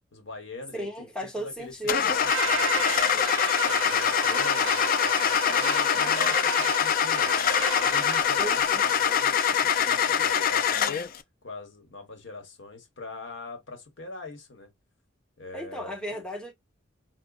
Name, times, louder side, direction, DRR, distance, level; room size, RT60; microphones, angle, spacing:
voice 1, 0.1-3.3 3.6-7.4 7.7-10.9 11.4-14.7 15.4-16.2, left 3 dB, 65° left, 1.2 m, -42 dB
voice 2, 0.7-2.1 8.4-8.8 15.5-16.5, right 1 dB, 5° left, 0.9 m, -35 dB
Car / Engine starting, 1.9-11.2, left 8 dB, 45° left, 0.4 m, -24 dB
sound 1, 2.3-8.2, right 7 dB, 75° right, 0.4 m, -34 dB
4.9 x 2.2 x 2.3 m
head